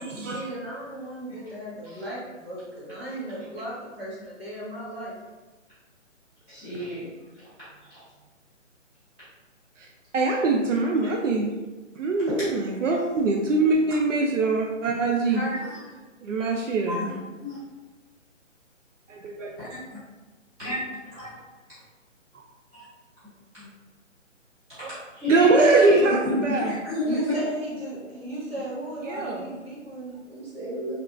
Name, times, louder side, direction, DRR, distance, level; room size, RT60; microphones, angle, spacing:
voice 1, 0.0-5.1 15.3-15.7 27.0-31.0, right 1 dB, 50° right, -6 dB, 1.1 m, -35 dB
voice 2, 6.5-7.1 7.9-8.0 14.9-15.0 15.5-15.8 16.9-17.6 19.6-20.0 20.6-21.3 22.7-22.8 23.5-23.7 25.1-27.4 29.1-29.3, left 1 dB, 10° right, -17 dB, 1.2 m, -30 dB
voice 3, 10.1-11.5 12.0-15.4 16.2-17.1 19.1-19.5 24.8-24.9 25.3-26.7 29.0-29.4, right 3 dB, 75° right, 1 dB, 0.5 m, -23 dB
3.5 x 2.3 x 2.4 m, 1.2 s
hypercardioid pair, 170°, 39 cm